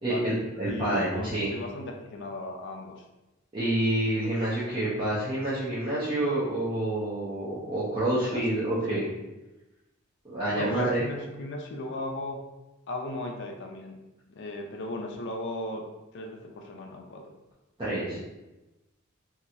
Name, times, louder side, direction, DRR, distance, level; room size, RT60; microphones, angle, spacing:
voice 1, 0.0-1.6 3.5-9.1 10.2-11.0 17.8-18.2, right 1 dB, 25° right, -11 dB, 0.7 m, -28 dB
voice 2, 0.6-3.0 8.1-8.4 8.9-9.0 10.5-12.4 12.9-14.0 14.3-15.8 16.1-17.2, left 1 dB, 60° left, 2 dB, 0.5 m, -36 dB
3.0 x 2.9 x 2.6 m, 1.0 s
head